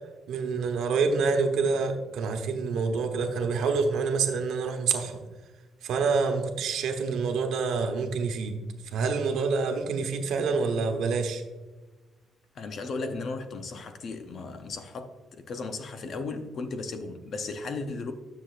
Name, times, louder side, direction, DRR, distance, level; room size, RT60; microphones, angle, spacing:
voice 1, 0.3-5.2 5.8-8.6 8.9-11.4, right 4 dB, 75° right, 1.0 m, -27 dB
voice 2, 12.5-18.1, left 3 dB, 45° left, 0.7 m, -35 dB
10.0 x 6.9 x 2.5 m
cardioid pair, 170°, 0 cm